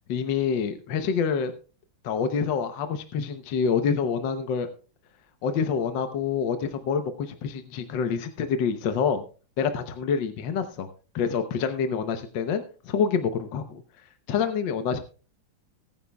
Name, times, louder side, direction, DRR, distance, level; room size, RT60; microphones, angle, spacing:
voice 1, 0.0-1.5 2.0-4.7 5.4-9.2 9.6-10.9 11.1-13.8 14.3-15.0, left 6 dB, 65° left, 9 dB, 1.5 m, -27 dB
20.5 x 9.6 x 2.3 m, 0.36 s
omnidirectional pair, 2.3 m